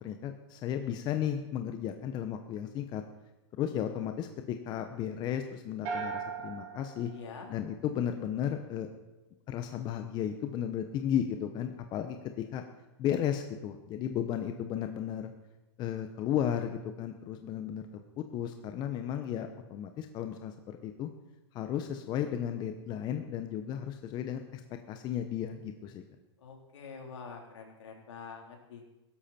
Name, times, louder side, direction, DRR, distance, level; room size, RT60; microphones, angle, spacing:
voice 1, 0.0-3.0 3.6-7.1 7.5-8.9 9.5-12.6 13.0-15.3 15.8-17.8 18.2-21.1 21.5-24.6 24.9-26.0, left 9 dB, 30° left, 6 dB, 1.0 m, -34 dB
sound 1, 5.8-8.1, right 5 dB, 35° right, 4.2 m, -39 dB
voice 2, 7.1-7.5 26.4-28.9, left 5 dB, 70° left, 1 dB, 3.8 m, -46 dB
16.5 x 13.0 x 4.4 m, 1.0 s
hypercardioid pair, 135°, 15 cm